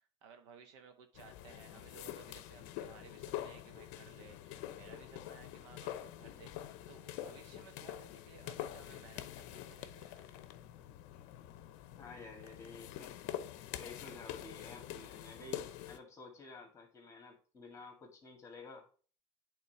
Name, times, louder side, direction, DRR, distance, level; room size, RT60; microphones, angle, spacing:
voice 1, 0.0-10.3, right 6 dB, 80° right, 7 dB, 1.3 m, -58 dB
sound 1, 1.2-16.0, left 12 dB, 60° left, 0.7 m, -46 dB
voice 2, 12.0-13.2 13.7-18.9, left 3 dB, 20° left, 4 dB, 1.9 m, -52 dB
8.6 x 3.7 x 4.5 m, 0.38 s
supercardioid pair, 140°, 15 cm